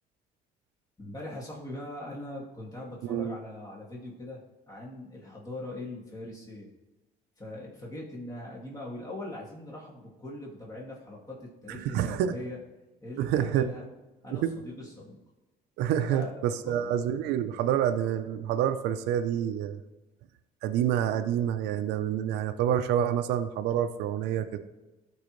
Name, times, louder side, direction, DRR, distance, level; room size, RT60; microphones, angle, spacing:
voice 1, 1.0-6.7 7.4-12.6 13.0-13.8 14.2-15.2 16.1-17.2, left 1 dB, 20° left, -4 dB, 2.2 m, -41 dB
voice 2, 3.0-3.4 11.7-12.3 13.2-13.7 14.3-14.5 15.8-19.8 20.6-24.6, right 10 dB, 90° right, 8 dB, 0.6 m, -28 dB
13.5 x 4.7 x 3.1 m, 1.1 s
cardioid pair, 110°, 17 cm